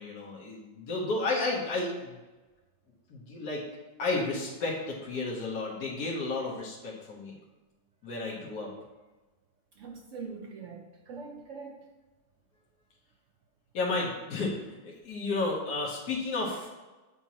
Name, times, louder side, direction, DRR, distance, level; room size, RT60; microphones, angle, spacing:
voice 1, 0.0-2.2 3.1-3.6 4.0-7.3 8.0-8.7 13.7-16.7, left 3 dB, 65° left, -4 dB, 1.6 m, -32 dB
voice 2, 9.8-11.8, right 4 dB, 70° right, 1 dB, 0.7 m, -43 dB
8.2 x 4.5 x 2.9 m, 1.2 s
omnidirectional pair, 1.9 m